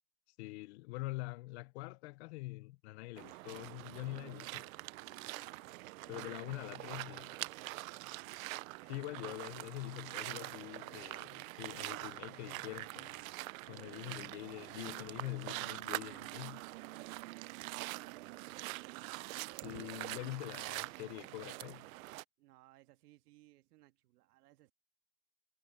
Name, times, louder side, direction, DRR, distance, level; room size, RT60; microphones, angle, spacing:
voice 1, 0.4-4.5 6.1-7.3 8.9-13.2 13.7-16.6 19.6-21.9, left 20 dB, 50° left, 0.5 m, -45 dB
sound 1, 3.2-22.2, right 21 dB, 65° right, 0.5 m, -44 dB
voice 2, 3.8-4.7 5.3-5.6 6.0-7.2 16.9-19.1 22.4-24.7, right 18 dB, 80° right, 1.7 m, -63 dB
Wind instrument woodwind instrument, 4.5-11.3 11.6-12.0, left 5 dB, 10° left, 3.3 m, -71 dB
supercardioid pair, 170°, 46 cm